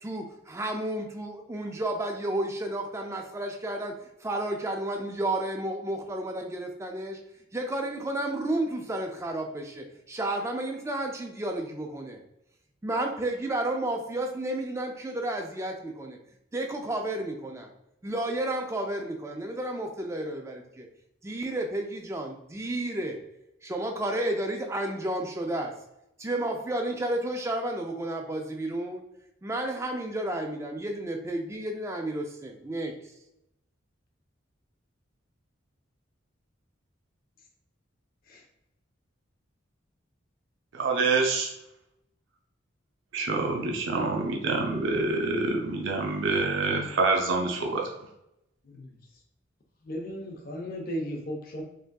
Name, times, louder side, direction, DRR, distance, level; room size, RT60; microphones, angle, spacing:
voice 1, 0.0-3.9 4.2-7.2 7.5-12.2 12.8-16.2 16.5-17.7 18.0-20.9 21.2-23.2 23.6-25.7 26.2-29.0 29.4-32.9, right 1 dB, 15° right, 3 dB, 0.3 m, -31 dB
voice 2, 40.7-41.5 43.1-47.8, right 3 dB, 75° right, 1 dB, 0.5 m, -26 dB
voice 3, 49.8-51.6, equal, 45° left, 1 dB, 0.6 m, -35 dB
3.4 x 2.6 x 2.2 m, 0.84 s
head